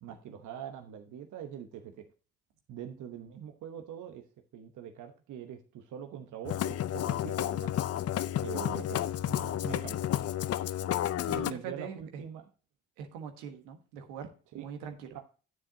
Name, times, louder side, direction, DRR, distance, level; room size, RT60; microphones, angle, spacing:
voice 1, 0.0-2.1 2.7-4.2 4.5-7.7 8.3-10.1 11.3-12.5 14.5-14.7 15.1-15.2, right 9 dB, 65° right, 5 dB, 1.0 m, -43 dB
Musical instrument, 6.4-11.5, left 12 dB, 50° left, 0.6 m, -31 dB
voice 2, 11.3-12.2 13.0-14.3 14.5-15.2, right 7 dB, 85° right, 5 dB, 1.4 m, -42 dB
9.6 x 7.5 x 2.8 m, 0.36 s
hypercardioid pair, 55°, 33 cm